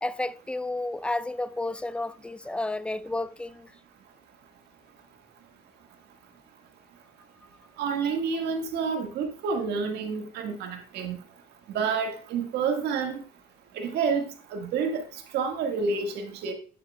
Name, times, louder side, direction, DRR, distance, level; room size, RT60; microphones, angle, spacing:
voice 1, 0.0-3.7, left 2 dB, 5° left, 0.3 m, -31 dB
voice 2, 7.8-11.2 11.7-13.2 13.7-14.2 14.5-16.5, right 5 dB, 80° right, 1.7 m, -29 dB
9.3 x 8.6 x 2.3 m
cardioid pair, 110°, 17 cm